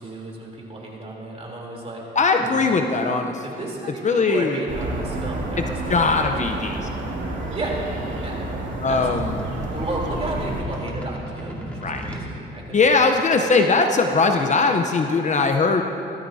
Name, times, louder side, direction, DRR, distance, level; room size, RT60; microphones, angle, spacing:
voice 1, 0.0-2.7 3.4-6.7 7.5-7.7 8.2-8.4 8.9-13.4, right 2 dB, 30° right, -2 dB, 3.4 m, -34 dB
voice 2, 2.2-3.4 4.0-4.6 5.9-6.8 8.8-9.4 11.8-12.0 12.7-15.8, left 4 dB, 35° left, 4 dB, 0.8 m, -20 dB
sound 1, 4.7-10.6, right 2 dB, 70° right, 2.4 m, -30 dB
sound 2, 7.1-12.3, equal, 5° left, 2.5 m, -36 dB
18.5 x 14.0 x 2.8 m, 2.8 s
cardioid pair, 90°, 20 cm